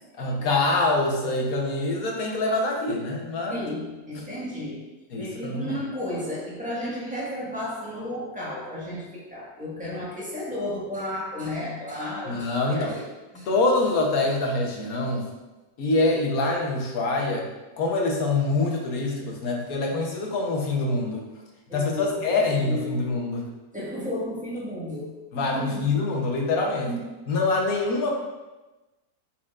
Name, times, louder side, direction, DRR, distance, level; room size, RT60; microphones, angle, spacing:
voice 1, 0.2-3.7 4.1-4.2 5.1-5.7 12.3-12.9 13.5-15.3 15.8-17.5 17.8-21.2 21.7-23.5 25.3-26.9 27.3-28.1, left 2 dB, 65° left, 0 dB, 1.4 m, -25 dB
voice 2, 3.5-4.9 5.2-13.1 13.3-13.5 21.7-23.1 23.7-25.9 26.8-27.1, left 1 dB, 5° right, -7 dB, 1.6 m, -33 dB
8.9 x 4.4 x 2.5 m, 1.1 s
omnidirectional pair, 1.7 m